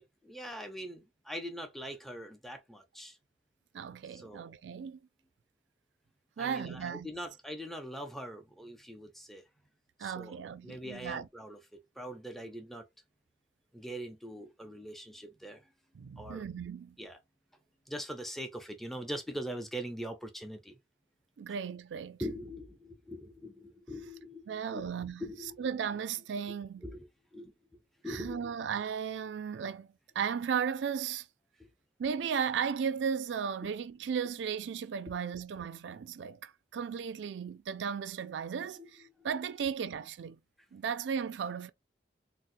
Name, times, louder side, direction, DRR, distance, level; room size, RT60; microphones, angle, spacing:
voice 1, 0.0-3.2 4.1-4.5 6.4-9.4 10.0-12.9 13.7-15.7 16.2-16.5 17.0-17.2 17.9-20.8 22.2-24.9 25.2-25.7 26.8-27.5 28.0-28.5 31.6-31.7 33.6-33.7 35.1-35.3 38.8-39.3, equal, ahead, 0.4 m, -42 dB
voice 2, 3.7-5.0 6.4-7.1 10.0-11.3 15.9-17.0 21.4-22.2 24.5-25.2 25.6-26.8 28.0-29.9 30.2-31.3 32.0-40.4 40.7-41.7, right 7 dB, 85° right, 0.4 m, -35 dB
4.1 x 2.0 x 2.5 m
head